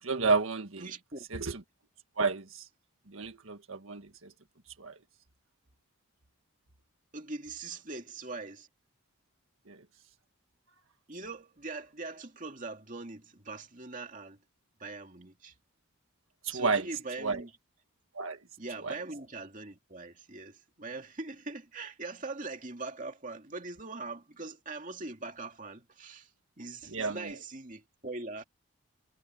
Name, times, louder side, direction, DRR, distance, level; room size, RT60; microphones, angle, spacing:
voice 1, 0.0-0.9 1.3-1.6 2.2-2.7 3.1-4.3 4.8-5.0 9.7-9.8 16.4-16.9 17.2-17.4 18.1-18.4 18.8-19.0 26.9-27.3, right 4 dB, 75° right, 1.6 m, -31 dB
voice 2, 0.8-1.3 7.1-8.7 11.1-14.4 14.8-15.5 16.5-17.5 18.6-26.3 26.6-28.4, right 3 dB, 35° right, 2.5 m, -42 dB
head